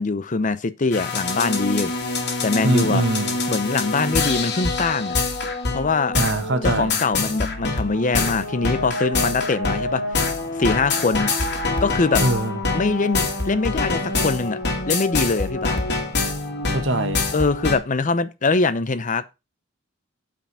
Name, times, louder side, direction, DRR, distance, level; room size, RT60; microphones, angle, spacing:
voice 1, 0.0-1.9 2.4-3.0 3.5-5.2 5.7-6.2 6.6-10.0 10.6-11.3 11.8-12.2 12.7-14.6 14.9-15.8 17.3-19.3, left 3 dB, 40° left, 0.7 m, -23 dB
sound 1, 0.9-17.8, left 3 dB, 60° left, 2.5 m, -25 dB
voice 2, 2.6-3.4 6.2-7.0 12.2-12.6 16.7-17.2, right 2 dB, 65° right, 1.5 m, -22 dB
9.0 x 5.1 x 5.5 m
head